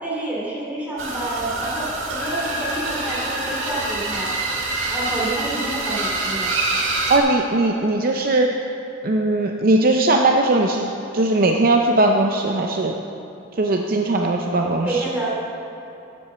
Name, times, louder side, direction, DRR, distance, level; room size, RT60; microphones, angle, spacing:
voice 1, 0.0-4.5 4.9-6.5 14.8-15.3, right 2 dB, 10° right, -6 dB, 2.8 m, -28 dB
sound 1, 1.0-7.2, right 2 dB, 75° right, 1.7 m, -26 dB
voice 2, 7.1-8.7 9.0-13.0 13.6-15.0, right 2 dB, 45° right, 2 dB, 0.5 m, -19 dB
10.5 x 8.0 x 6.8 m, 2.9 s
head